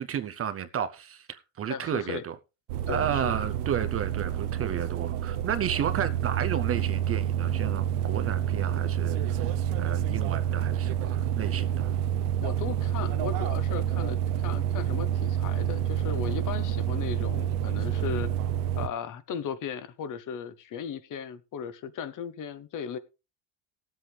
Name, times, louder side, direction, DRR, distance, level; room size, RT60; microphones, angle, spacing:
voice 1, 0.0-2.3 2.9-9.5 9.8-11.9, right 9 dB, 30° right, 0.6 m, -32 dB
voice 2, 1.7-2.2 2.9-3.4 12.4-18.3 18.8-23.0, left 7 dB, 40° left, 0.9 m, -36 dB
sound 1, 2.7-18.9, right 10 dB, 80° right, 0.9 m, -28 dB
18.0 x 7.8 x 3.3 m
cardioid pair, 125°, 47 cm